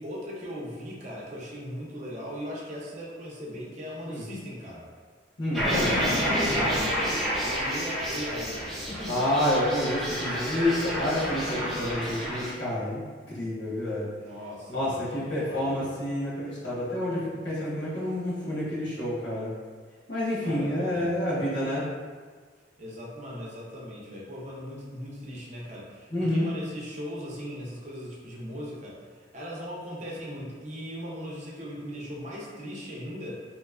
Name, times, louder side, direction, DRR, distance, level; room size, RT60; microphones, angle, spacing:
voice 1, 0.0-4.9 6.4-9.2 14.2-15.9 20.4-21.2 22.8-33.4, equal, 40° right, -4 dB, 0.6 m, -39 dB
voice 2, 5.4-6.2 9.1-13.0 13.3-14.1 14.7-19.5 20.1-21.8 26.1-26.5, left 1 dB, 65° left, -8 dB, 1.3 m, -29 dB
sound 1, 5.5-12.5, equal, ahead, 0.7 m, -29 dB
3.2 x 2.9 x 2.4 m, 1.6 s
head